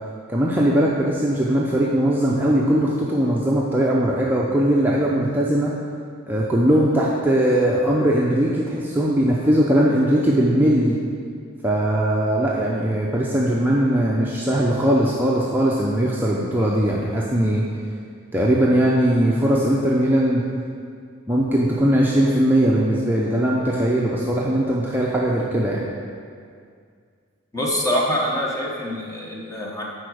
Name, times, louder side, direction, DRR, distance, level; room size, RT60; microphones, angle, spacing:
voice 1, 0.3-5.7 6.3-11.0 11.6-17.6 18.3-20.4 21.3-25.8, right 1 dB, 10° right, -5 dB, 0.6 m, -20 dB
voice 2, 27.5-29.8, left 1 dB, 15° left, -2 dB, 1.1 m, -24 dB
9.7 x 4.3 x 6.3 m, 2.2 s
head